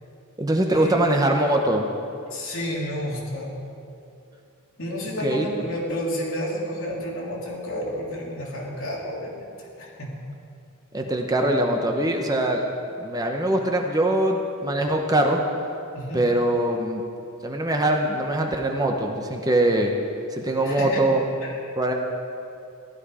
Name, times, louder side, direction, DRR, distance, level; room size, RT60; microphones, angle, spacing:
voice 1, 0.4-1.9 5.2-5.4 10.9-12.6 13.0-15.4 16.1-17.0 17.4-19.9 20.3-21.2 21.8-21.9, right 1 dB, 15° right, 2 dB, 0.9 m, -22 dB
voice 2, 2.3-3.5 4.8-10.1 15.9-16.3 20.6-21.1 21.4-21.6, equal, 65° left, -4 dB, 3.2 m, -31 dB
15.0 x 12.0 x 4.9 m, 2.6 s
head